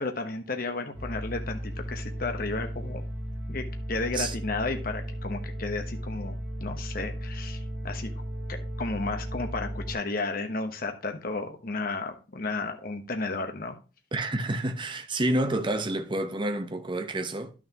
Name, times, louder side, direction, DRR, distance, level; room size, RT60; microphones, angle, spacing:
voice 1, 0.0-3.0 3.5-8.1 8.5-13.8, left 3 dB, 55° left, 1.2 m, -33 dB
sound 1, 0.9-9.9, equal, 10° right, 1.8 m, -35 dB
voice 2, 14.1-17.5, right 1 dB, 30° right, 0.9 m, -29 dB
11.5 x 6.3 x 3.0 m
head